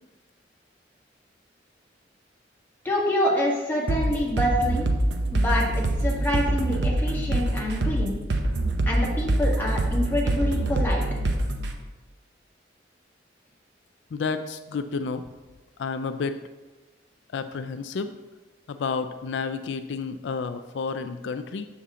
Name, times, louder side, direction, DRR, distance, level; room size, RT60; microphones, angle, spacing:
voice 1, 2.8-4.9 5.3-8.2 8.9-11.0, left 1 dB, 10° left, -4 dB, 1.6 m, -26 dB
sound 1, 3.9-11.7, right 1 dB, 80° right, 0.8 m, -25 dB
voice 2, 14.1-15.2 15.8-16.4 17.3-18.1 18.7-21.7, left 5 dB, 80° left, 9 dB, 0.4 m, -30 dB
7.2 x 6.8 x 3.7 m, 1.2 s
head